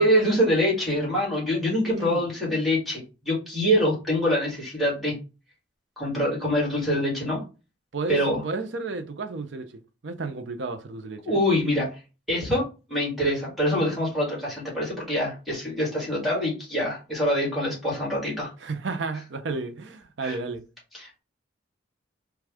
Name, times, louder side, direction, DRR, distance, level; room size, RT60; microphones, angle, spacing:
voice 1, 0.0-5.1 6.0-7.4 8.1-8.4 11.2-11.9 12.3-18.5 20.2-20.4 21.0-21.2, equal, ahead, 1.6 m, -25 dB
voice 2, 1.9-2.3 7.9-9.7 10.0-11.4 18.6-20.6, right 3 dB, 70° right, 0.5 m, -32 dB
3.3 x 2.3 x 3.4 m
head